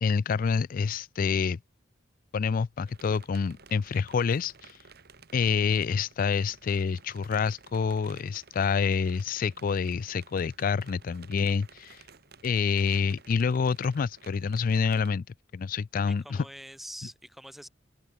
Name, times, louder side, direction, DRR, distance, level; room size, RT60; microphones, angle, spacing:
voice 1, 0.0-1.6 2.3-4.8 5.3-12.0 12.4-15.2 15.5-16.4, left 5 dB, 45° left, 0.4 m, -27 dB
sound 1, 2.9-15.1, right 5 dB, 60° right, 3.8 m, -54 dB
voice 2, 16.1-17.7, equal, ahead, 5.9 m, -45 dB
head